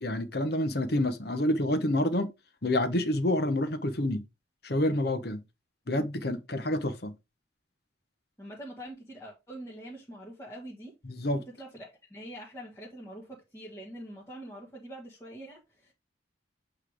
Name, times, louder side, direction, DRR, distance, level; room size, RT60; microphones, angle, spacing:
voice 1, 0.0-2.3 2.6-4.2 4.6-5.4 5.9-7.1 11.0-11.4, left 1 dB, 55° left, 1.0 m, -28 dB
voice 2, 8.4-10.9 11.4-15.9, right 1 dB, 15° left, 1.6 m, -44 dB
8.1 x 3.3 x 4.8 m
head